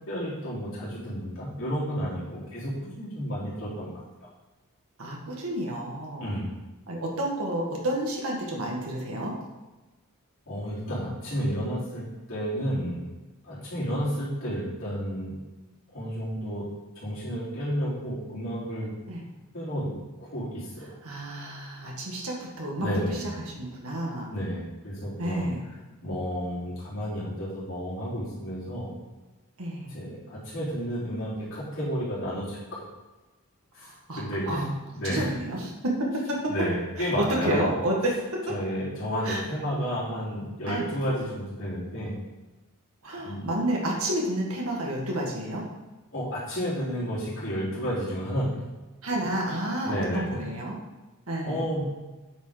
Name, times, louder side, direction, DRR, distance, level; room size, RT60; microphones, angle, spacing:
voice 1, 0.1-2.7 3.0-3.9 6.2-6.5 10.5-12.0 12.3-13.1 13.4-15.4 15.9-16.6 17.0-18.9 19.5-19.9 20.2-21.0 22.8-23.2 24.3-25.4 26.0-28.9 29.9-32.6 33.7-34.7 34.9-35.3 36.5-37.6 38.5-42.2 43.2-43.5 46.1-48.6 49.1-49.2 49.8-50.4 51.4-51.8, equal, 65° left, -9 dB, 3.5 m, -31 dB
voice 2, 5.0-6.3 6.9-9.3 19.1-19.2 21.0-24.3 25.2-25.6 29.6-30.0 33.8-34.7 35.0-35.7 36.3-36.5 37.2-38.1 39.2-39.4 40.7-40.9 43.0-45.6 49.0-50.8 51.3-51.6, right 1 dB, 85° right, -2 dB, 1.8 m, -30 dB
9.0 x 6.1 x 5.1 m, 1.1 s
head